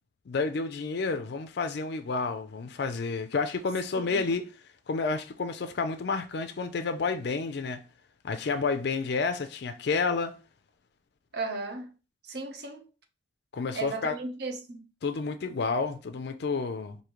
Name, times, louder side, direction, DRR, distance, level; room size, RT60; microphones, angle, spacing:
voice 1, 0.3-4.4 4.9-7.8 8.2-10.4 13.5-14.1 15.0-17.0, left 4 dB, 55° left, 0.4 m, -30 dB
voice 2, 11.3-11.9 12.3-12.8 13.7-14.9, right 3 dB, 55° right, 0.7 m, -35 dB
4.9 x 2.7 x 3.0 m
head